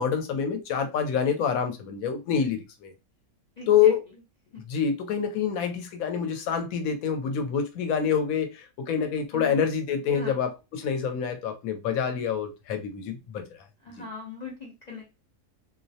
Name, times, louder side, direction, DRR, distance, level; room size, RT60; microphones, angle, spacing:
voice 1, 0.0-2.9 3.7-4.0 4.6-13.4 14.0-14.1, left 7 dB, 85° left, 1.0 m, -26 dB
voice 2, 3.6-3.9 4.5-4.6 9.3-9.6 10.1-10.4 13.8-15.0, left 2 dB, 45° left, 0.5 m, -39 dB
2.5 x 2.0 x 2.6 m
omnidirectional pair, 1.4 m